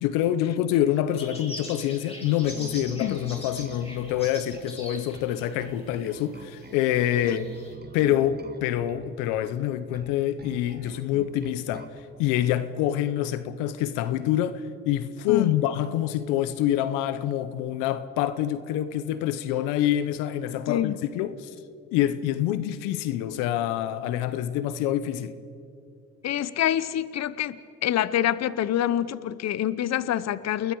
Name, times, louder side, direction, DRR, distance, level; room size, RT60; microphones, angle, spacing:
voice 1, 0.0-7.5 7.9-11.9 12.2-21.5 21.9-25.4, left 11 dB, 90° left, 0.8 m, -26 dB
sound 1, 1.2-6.1 6.4-7.7, left 1 dB, 20° left, 7.4 m, -43 dB
Bass guitar, 2.4-12.0, right 4 dB, 30° right, 1.9 m, -47 dB
voice 2, 20.7-21.0 26.2-30.7, left 11 dB, 55° left, 0.8 m, -26 dB
29.0 x 21.0 x 4.7 m
supercardioid pair, 65°, 31 cm